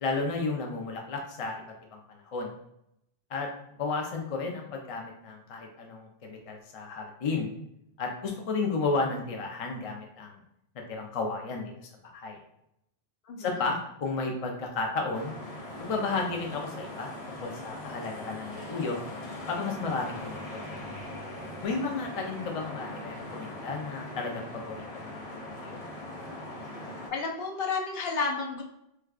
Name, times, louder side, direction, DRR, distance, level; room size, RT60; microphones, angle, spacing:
voice 1, 0.0-2.5 3.3-3.5 3.8-7.5 8.0-10.4 10.7-12.4 13.4-15.3 15.8-19.0 19.5-20.7 21.6-25.3 25.6-25.8, left 3 dB, 45° left, 1 dB, 0.5 m, -33 dB
sound 1, 15.1-27.1, left 1 dB, 90° left, 1.3 m, -40 dB
voice 2, 27.1-28.6, left 4 dB, 70° left, 1 dB, 0.8 m, -31 dB
4.7 x 2.2 x 2.4 m, 0.79 s
omnidirectional pair, 1.1 m